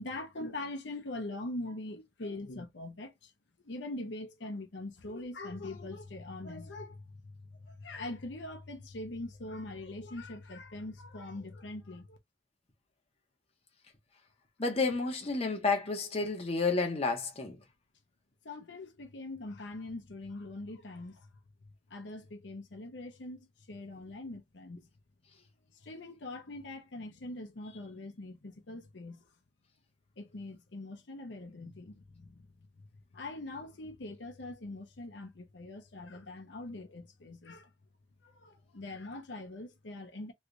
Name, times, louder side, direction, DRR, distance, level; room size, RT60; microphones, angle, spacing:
voice 1, 0.0-3.3 3.6-12.2 16.2-16.3 18.4-21.3 21.6-24.9 25.4-25.5 25.7-29.2 30.2-32.9 33.1-37.7 38.2-40.3, left 2 dB, 75° left, 0.8 m, -43 dB
voice 2, 14.6-17.6, left 3 dB, 35° left, 0.9 m, -30 dB
3.2 x 3.0 x 2.6 m
head